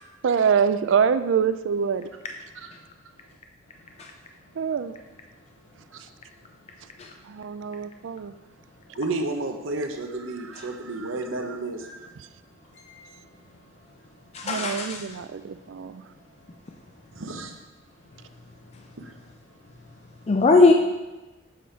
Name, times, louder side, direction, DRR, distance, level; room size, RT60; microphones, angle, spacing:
voice 1, 0.2-2.1 4.6-4.9 7.3-8.3 14.4-16.0, right 7 dB, 70° right, 12 dB, 0.4 m, -25 dB
voice 2, 2.4-3.3 3.6-9.0 12.1-14.7 15.1-17.2 17.8-20.5, left 1 dB, 70° left, -5 dB, 2.5 m, -57 dB
voice 3, 9.0-12.1 17.2-17.5 19.0-19.1, right 2 dB, 85° right, 5 dB, 0.8 m, -31 dB
voice 4, 14.3-15.1 20.3-20.7, left 3 dB, 30° left, 3 dB, 0.4 m, -18 dB
7.7 x 4.4 x 5.0 m, 1.1 s
head